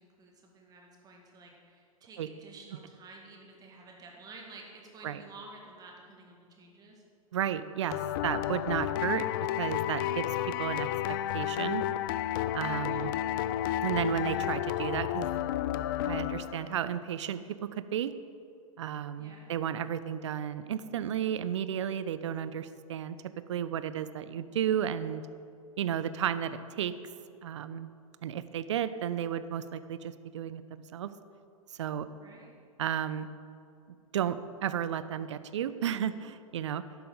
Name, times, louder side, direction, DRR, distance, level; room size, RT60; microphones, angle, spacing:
voice 1, 0.0-7.0 12.9-13.2 19.2-19.5 32.2-32.5, right 3 dB, 20° right, 0 dB, 1.9 m, -51 dB
voice 2, 7.3-9.3 9.6-10.3 10.6-10.9 11.3-11.8 12.5-13.1 13.8-15.3 16.0-17.4 17.8-18.1 18.8-23.2 23.5-25.2 25.8-26.9 27.4-27.9 28.2-31.1 31.7-32.1 32.8-33.3 34.1-36.8, right 9 dB, 55° right, 13 dB, 0.5 m, -33 dB
sound 1, 7.9-16.8, left 12 dB, 40° left, 0.3 m, -31 dB
12.0 x 10.5 x 3.8 m, 2.4 s
figure-of-eight pair, 100°, 18 cm